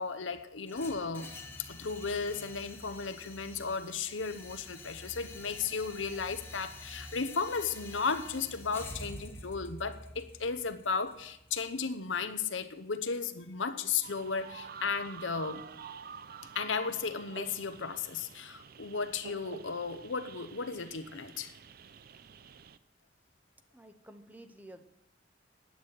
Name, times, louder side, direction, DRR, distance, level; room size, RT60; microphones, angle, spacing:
voice 1, 0.0-1.3 1.6-15.6 16.5-21.5, left 5 dB, 90° left, 0.9 m, -35 dB
tail - tail, 0.7-12.7, left 2 dB, 10° left, 1.2 m, -48 dB
sound 1, 14.0-22.8, right 6 dB, 50° right, 0.5 m, -48 dB
voice 2, 23.7-24.9, right 1 dB, 10° right, 0.8 m, -51 dB
9.6 x 8.2 x 8.9 m
head